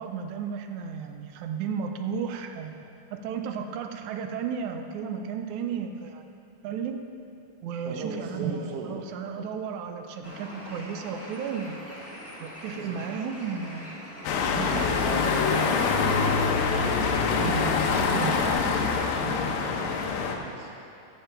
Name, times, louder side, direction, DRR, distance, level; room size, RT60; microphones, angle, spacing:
voice 1, 0.0-6.2 6.6-7.0 7.6-11.9 12.4-13.9 14.5-15.2 17.4-17.7 18.0-18.4 19.2-19.4, right 6 dB, 85° right, 6 dB, 2.0 m, -34 dB
voice 2, 7.8-8.9 12.8-13.0 14.6-17.5 18.1-18.7 19.9-20.7, right 3 dB, 60° right, 0 dB, 1.1 m, -38 dB
Bird, 10.2-18.5, equal, 15° left, 0.4 m, -43 dB
sound 1, 14.2-20.4, left 5 dB, 85° left, 2.1 m, -25 dB
13.0 x 6.7 x 4.5 m, 2.7 s
omnidirectional pair, 3.4 m